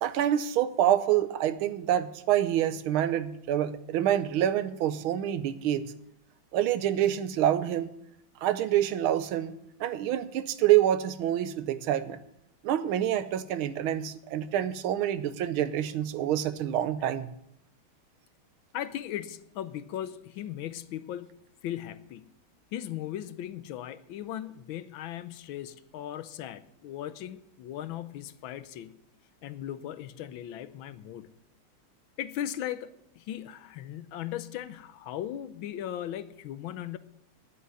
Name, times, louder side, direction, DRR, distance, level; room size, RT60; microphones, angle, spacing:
voice 1, 0.0-5.9 6.5-7.9 8.4-12.2 12.6-17.3, right 11 dB, 85° right, 1.6 m, -27 dB
voice 2, 18.7-22.3 22.7-28.9 29.4-31.3 32.2-37.0, left 11 dB, 80° left, 1.4 m, -38 dB
10.0 x 7.7 x 9.6 m
omnidirectional pair, 2.2 m